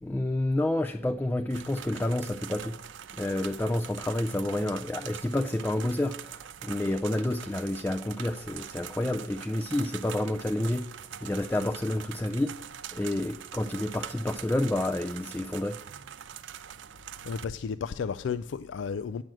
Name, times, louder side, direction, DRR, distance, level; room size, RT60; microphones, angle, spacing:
voice 1, 0.0-2.8 3.1-10.9 11.2-12.6 12.9-15.8, left 1 dB, 10° left, 0.3 m, -29 dB
sound 1, 1.5-17.4, right 9 dB, 85° right, 0.5 m, -43 dB
voice 2, 17.2-19.2, left 6 dB, 85° left, 0.3 m, -33 dB
9.0 x 6.2 x 7.6 m
head